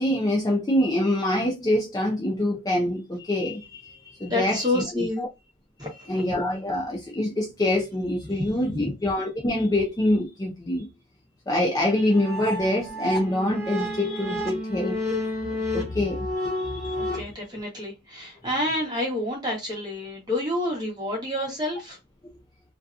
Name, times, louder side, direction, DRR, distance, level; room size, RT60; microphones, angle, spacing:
voice 1, 0.0-5.1 6.1-10.9 11.5-15.0 15.7-17.3, left 1 dB, 15° left, 0.4 m, -25 dB
voice 2, 4.3-5.2 5.8-6.2 8.3-8.9 16.9-22.0, left 1 dB, 20° right, 1.0 m, -29 dB
sound 1, 11.9-17.2, left 1 dB, ahead, 1.3 m, -31 dB
2.7 x 2.3 x 2.4 m
head